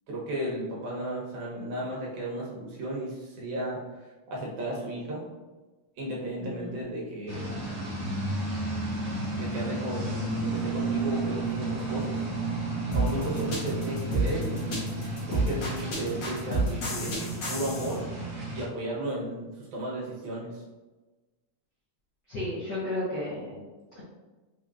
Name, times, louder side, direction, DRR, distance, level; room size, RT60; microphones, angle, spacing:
voice 1, 0.1-5.3 6.0-7.5 9.3-12.2 12.9-15.0 15.3-17.2 17.5-18.0 18.5-20.6, right 1 dB, 75° right, -4 dB, 2.3 m, -34 dB
voice 2, 6.4-6.8 22.3-23.6 23.9-24.0, left 1 dB, 80° left, -9 dB, 0.9 m, -33 dB
sound 1, 7.3-18.6, right 2 dB, 55° right, 0.9 m, -32 dB
sound 2, 12.9-18.0, right 2 dB, 60° left, 1.2 m, -29 dB
5.8 x 2.9 x 2.4 m, 1.2 s
omnidirectional pair, 3.6 m